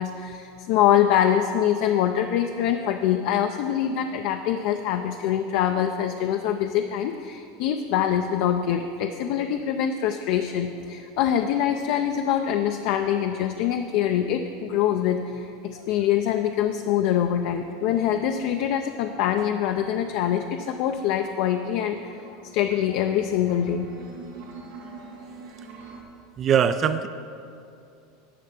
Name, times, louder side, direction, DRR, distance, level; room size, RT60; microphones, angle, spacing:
voice 1, 0.0-22.1 22.5-23.9, left 10 dB, 60° left, 6 dB, 0.4 m, -24 dB
sound 1, 19.5-26.0, right 4 dB, 90° right, 1.8 m, -46 dB
voice 2, 26.4-27.1, right 8 dB, 30° right, 11 dB, 0.3 m, -21 dB
10.0 x 6.6 x 5.9 m, 2.6 s
supercardioid pair, 140°, 0 cm